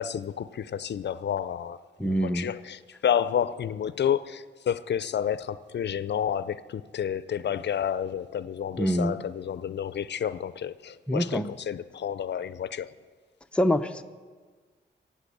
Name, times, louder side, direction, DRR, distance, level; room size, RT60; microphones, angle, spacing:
voice 1, 0.0-1.8 2.0-12.9, left 9 dB, 65° left, 0.5 m, -30 dB
voice 2, 2.0-2.5 8.8-9.2 11.1-11.5 13.5-14.0, equal, 5° left, 0.6 m, -25 dB
15.5 x 8.5 x 8.3 m
wide cardioid pair, 125°, 20 cm